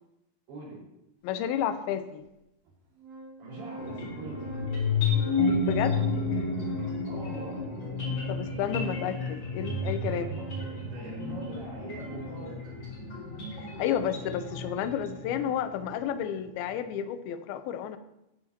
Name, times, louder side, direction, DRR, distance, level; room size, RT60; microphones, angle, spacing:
voice 1, 0.5-0.8 3.4-4.5 7.0-7.7 10.0-12.8, right 2 dB, 90° right, -6 dB, 7.4 m, -43 dB
voice 2, 1.2-2.2 5.6-6.0 8.3-10.3 13.5-18.0, left 9 dB, 80° left, 10 dB, 2.5 m, -31 dB
Organ, 1.3-1.4 2.2-2.3 2.7-12.5, right 2 dB, 60° right, 3.6 m, -45 dB
sound 1, 3.8-15.9, left 3 dB, 30° left, 5.7 m, -31 dB
16.5 x 9.6 x 2.9 m, 0.87 s
omnidirectional pair, 4.6 m